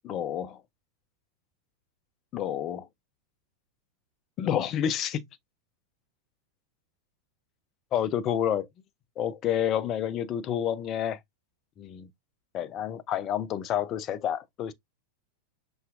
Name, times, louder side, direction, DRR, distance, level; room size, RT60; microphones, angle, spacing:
voice 1, 0.0-0.6 2.3-2.9 4.4-5.2 7.9-8.7 9.2-11.2 11.8-12.1 12.5-14.7, left 10 dB, 35° left, 0.5 m, -29 dB
5.5 x 2.3 x 2.4 m
figure-of-eight pair, 90°, 0 cm